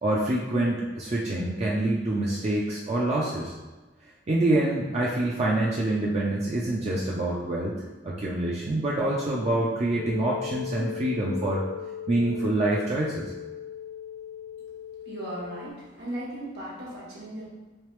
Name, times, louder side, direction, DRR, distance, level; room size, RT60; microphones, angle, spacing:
voice 1, 0.0-3.5 4.3-7.8 8.0-11.6 12.1-13.3, right 1 dB, 35° right, -4 dB, 0.4 m, -26 dB
sound 1, 10.0-15.7, left 9 dB, 25° left, 0.4 m, -38 dB
voice 2, 15.0-17.4, right 1 dB, 65° right, -5 dB, 1.2 m, -37 dB
3.3 x 3.2 x 3.1 m, 1.2 s
head